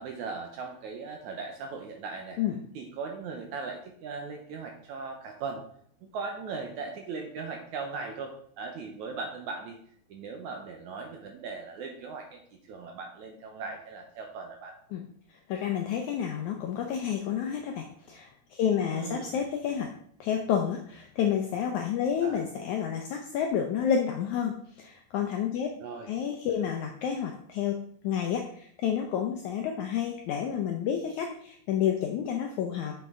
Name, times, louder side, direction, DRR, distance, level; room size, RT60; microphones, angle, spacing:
voice 1, 0.0-2.4 2.8-5.6 6.0-9.8 10.1-12.4 12.7-14.7 18.9-19.4 22.2-22.4 25.8-26.1, right 4 dB, 75° right, 3 dB, 1.8 m, -38 dB
voice 2, 15.5-19.9 20.2-25.7 26.1-27.8 28.0-32.9, left 8 dB, 80° left, 3 dB, 1.7 m, -30 dB
7.6 x 6.8 x 3.6 m, 0.63 s
omnidirectional pair, 4.2 m